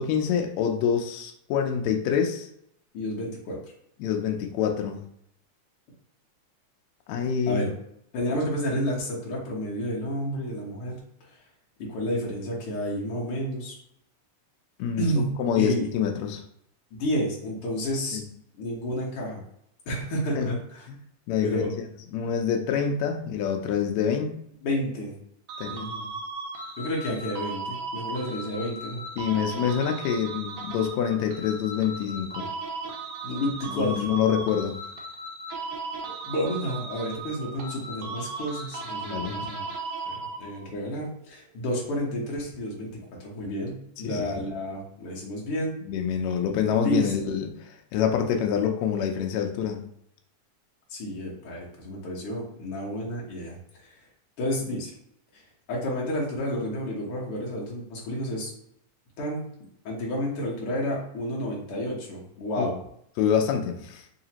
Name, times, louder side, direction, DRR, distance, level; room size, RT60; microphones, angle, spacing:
voice 1, 0.0-2.5 4.0-5.0 7.1-7.6 14.8-16.4 18.1-18.2 20.3-20.6 20.9-21.0 21.3-21.7 22.1-24.3 25.6-25.8 29.2-32.5 33.7-34.8 39.1-39.4 44.0-44.4 45.9-49.9 62.6-62.7 63.2-64.0, left 8 dB, 80° left, 4 dB, 1.6 m, -26 dB
voice 2, 2.9-3.6 7.5-7.7 8.1-11.0 11.9-13.7 15.0-15.3 15.5-15.9 16.9-18.2 18.5-19.4 19.9-20.9 21.4-21.7 24.6-25.1 25.7-26.1 26.8-29.0 33.2-34.1 36.2-39.6 40.0-42.9 43.2-45.7 46.7-47.1 50.9-53.9 54.4-54.9 55.3-55.4 55.7-58.5 59.2-59.4 59.8-62.8, equal, 60° left, -4 dB, 1.5 m, -30 dB
sound 1, 25.5-40.7, right 3 dB, 75° right, 1.8 m, -36 dB
4.9 x 2.8 x 2.8 m, 0.71 s
omnidirectional pair, 3.6 m